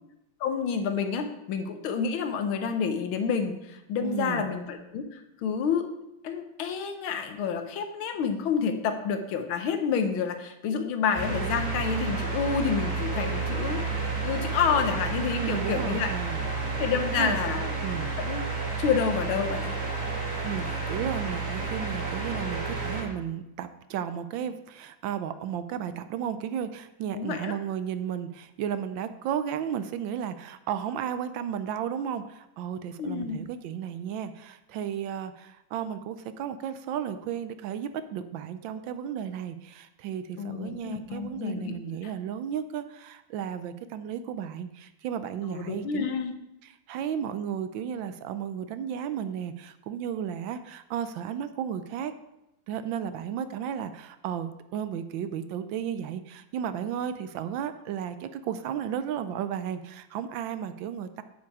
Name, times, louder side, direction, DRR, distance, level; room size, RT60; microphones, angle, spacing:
voice 1, 0.4-5.9 6.2-16.1 16.8-17.7 18.2-18.4 18.8-19.8 27.1-27.6 33.0-33.5 40.4-41.8 45.5-46.3, left 6 dB, 85° left, 7 dB, 1.7 m, -29 dB
voice 2, 4.0-4.5 15.4-16.4 17.2-18.1 20.4-46.1 46.6-52.1 52.7-61.2, right 9 dB, 75° right, 11 dB, 1.3 m, -34 dB
sound 1, 11.1-23.0, right 4 dB, 50° right, 2.5 m, -31 dB
8.4 x 7.3 x 4.8 m, 0.89 s
omnidirectional pair, 2.2 m